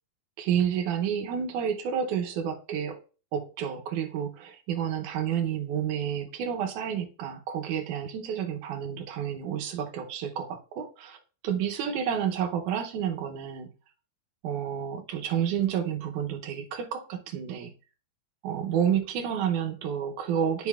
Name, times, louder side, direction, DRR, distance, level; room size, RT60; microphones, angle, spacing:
voice 1, 0.4-3.0 3.3-11.2 11.4-13.7 14.4-17.7 18.4-20.7, right 8 dB, 75° right, 1.9 m, -30 dB
11.0 x 5.0 x 2.4 m
omnidirectional pair, 4.3 m